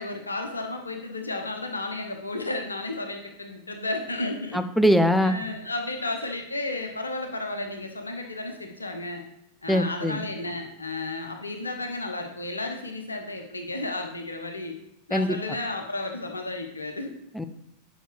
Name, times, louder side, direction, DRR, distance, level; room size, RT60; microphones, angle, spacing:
voice 1, 0.0-4.6 5.2-9.2 9.6-14.8 15.1-17.1, left 2 dB, 80° left, 4 dB, 0.9 m, -33 dB
voice 2, 4.5-5.4 9.7-10.2 15.1-15.4 17.3-17.4, equal, ahead, 9 dB, 0.5 m, -22 dB
9.1 x 5.8 x 3.2 m, 0.79 s
figure-of-eight pair, 90°, 0 cm